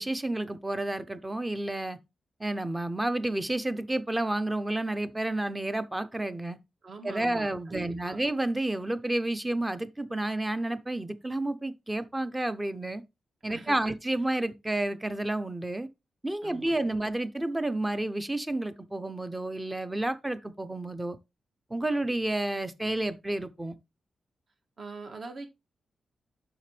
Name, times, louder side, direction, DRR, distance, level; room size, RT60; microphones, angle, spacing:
voice 1, 0.0-2.0 2.4-6.6 7.0-13.0 13.4-15.9 16.2-21.2 21.7-23.7, right 1 dB, 10° right, 0.7 m, -30 dB
voice 2, 6.8-8.2 13.5-13.8 16.4-16.9 24.8-25.5, right 3 dB, 50° right, 1.6 m, -42 dB
7.1 x 5.9 x 3.3 m
wide cardioid pair, 130°, 0 cm